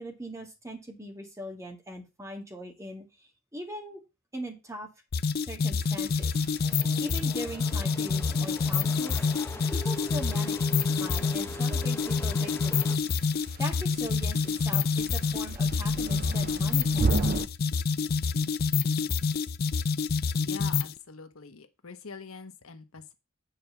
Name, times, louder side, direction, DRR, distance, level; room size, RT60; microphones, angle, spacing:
voice 1, 0.0-4.0 4.3-4.9 5.4-6.3 7.0-9.2 9.7-12.9 13.6-17.5, right 1 dB, 15° right, 1.9 m, -40 dB
sound 1, 5.1-21.0, left 5 dB, 45° left, 0.5 m, -27 dB
sound 2, 5.8-17.5, right 3 dB, 45° right, 0.6 m, -37 dB
sound 3, 6.6-13.0, equal, 10° left, 0.8 m, -42 dB
voice 2, 20.4-23.1, left 4 dB, 75° left, 1.1 m, -44 dB
7.7 x 4.6 x 6.9 m
head